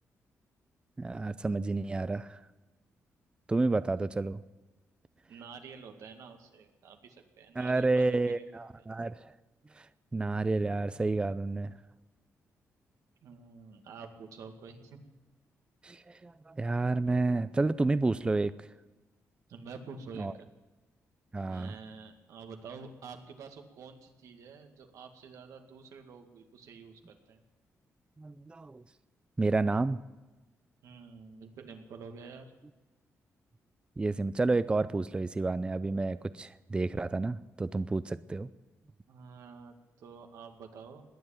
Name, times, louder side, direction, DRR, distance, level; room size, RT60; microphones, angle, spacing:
voice 1, 1.0-2.4 3.5-4.4 7.6-9.3 9.7-11.7 15.8-18.5 20.2-20.3 21.3-21.7 28.2-28.8 29.4-30.0 34.0-38.5, right 3 dB, 20° right, 15 dB, 0.5 m, -30 dB
voice 2, 5.3-8.5 13.2-15.0 19.5-20.5 21.5-27.4 30.8-32.5 39.1-41.0, right 5 dB, 85° right, 5 dB, 2.2 m, -48 dB
20.5 x 7.9 x 8.9 m, 1.2 s
cardioid pair, 110°, 5 cm